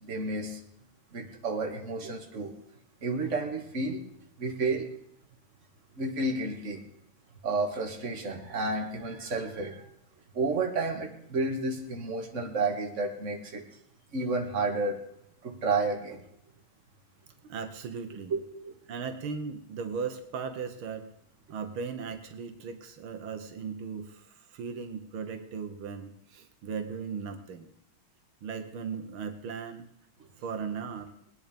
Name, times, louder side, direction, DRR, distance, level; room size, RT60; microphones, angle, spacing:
voice 1, 0.0-0.6 1.1-2.6 3.0-4.0 4.4-4.9 6.0-6.8 7.4-9.9 10.3-13.6 14.1-15.0 15.4-16.2 18.3-18.7, right 3 dB, 35° right, 2 dB, 2.1 m, -31 dB
voice 2, 17.4-18.4 18.9-21.1 21.5-27.7 28.4-29.9 30.4-31.1, right 5 dB, 80° right, 7 dB, 1.9 m, -37 dB
20.0 x 10.0 x 5.2 m, 0.73 s
omnidirectional pair, 2.3 m